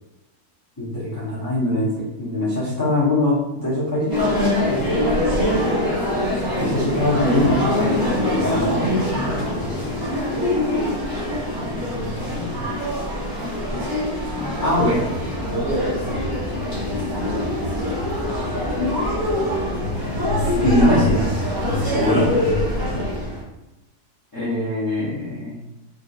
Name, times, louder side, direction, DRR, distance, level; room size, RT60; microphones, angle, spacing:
voice 1, 0.8-4.2 6.6-9.3 10.3-10.8 11.5-12.6 13.7-13.9 14.6-15.0 20.6-21.3 21.8-22.3 24.3-25.6, left 1 dB, 35° left, -9 dB, 0.3 m, -23 dB
sound 1, 4.1-23.4, left 1 dB, 20° right, 0.7 m, -23 dB
voice 2, 5.3-5.6 8.3-9.8 14.7-14.9 15.4-16.4 19.0-19.5 21.8-21.9 22.7-23.0, right 1 dB, 45° right, -8 dB, 1.3 m, -31 dB
3.6 x 2.6 x 2.4 m, 0.96 s
omnidirectional pair, 1.7 m